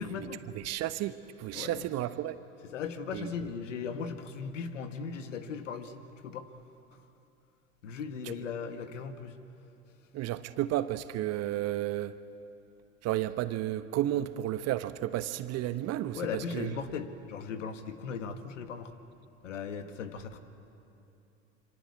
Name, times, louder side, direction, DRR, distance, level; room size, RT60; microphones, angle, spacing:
voice 1, 0.0-0.5 1.5-1.9 2.7-6.5 7.8-9.4 16.1-18.9 19.4-20.4, left 6 dB, 75° left, 8 dB, 1.9 m, -38 dB
voice 2, 0.5-2.4 3.1-3.3 8.2-8.3 10.1-12.1 13.0-16.7, right 13 dB, 40° right, 12 dB, 1.1 m, -32 dB
26.0 x 25.0 x 8.5 m, 2.8 s
hypercardioid pair, 85°, 37 cm